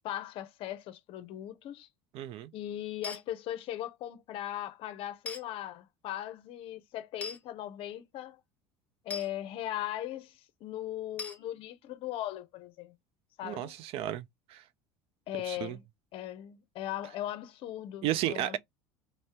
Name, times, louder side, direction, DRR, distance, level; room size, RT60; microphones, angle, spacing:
voice 1, 0.0-1.9 2.5-8.4 9.0-13.0 13.4-13.7 15.3-15.8 16.1-18.6, left 13 dB, 55° left, 0.6 m, -39 dB
voice 2, 2.1-2.5 13.4-14.6 15.4-15.8 18.0-18.6, right 13 dB, 60° right, 0.5 m, -33 dB
sound 1, 3.0-3.2 5.3-5.4 7.2-7.4 9.1-9.3 11.2-11.4, left 3 dB, 15° left, 1.0 m, -38 dB
2.7 x 2.0 x 3.4 m
supercardioid pair, 95°, 11 cm